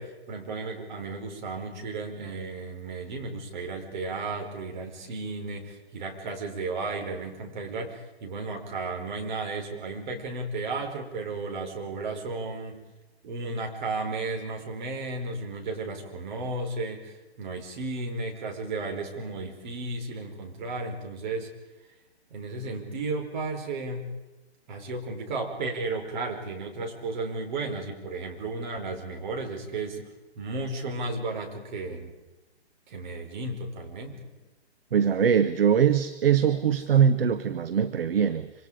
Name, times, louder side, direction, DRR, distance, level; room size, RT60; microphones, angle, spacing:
voice 1, 0.0-12.8 13.2-21.5 22.3-24.1 24.7-30.1 30.3-32.1 32.9-34.3, right 3 dB, 45° right, 3 dB, 4.9 m, -34 dB
voice 2, 34.9-38.5, right 8 dB, 60° right, 11 dB, 1.2 m, -22 dB
26.5 x 26.0 x 5.0 m, 1.1 s
figure-of-eight pair, 135°, 33 cm